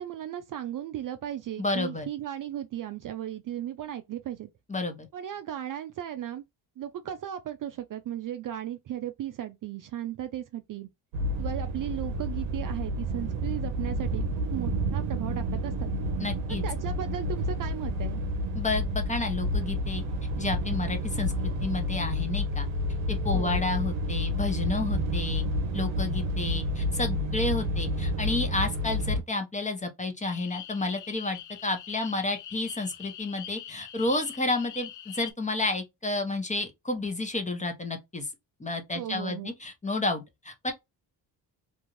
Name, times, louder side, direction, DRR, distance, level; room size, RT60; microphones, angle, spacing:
voice 1, 0.0-4.5 5.1-6.4 6.8-10.9 11.4-16.0 16.6-18.2 23.3-23.6 38.9-39.5, right 11 dB, 45° right, 0.4 m, -36 dB
voice 2, 1.6-2.1 4.7-5.1 16.2-16.6 18.5-20.0 20.4-21.3 21.6-22.7 23.1-25.5 25.7-38.3 38.6-40.7, left 2 dB, 15° left, 0.9 m, -31 dB
sound 1, 11.1-29.2, equal, 75° right, 0.8 m, -30 dB
sound 2, 30.2-35.3, left 10 dB, 40° left, 0.5 m, -43 dB
2.6 x 2.3 x 3.0 m
supercardioid pair, 65°, 46 cm